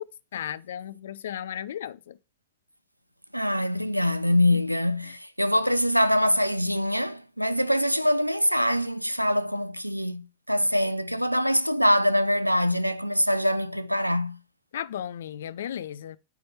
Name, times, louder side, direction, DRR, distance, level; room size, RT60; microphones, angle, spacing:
voice 1, 0.3-2.2 14.7-16.2, left 10 dB, 60° left, 0.3 m, -35 dB
voice 2, 3.3-14.4, equal, 90° right, 0.4 m, -24 dB
8.0 x 3.3 x 5.6 m
figure-of-eight pair, 90°, 0 cm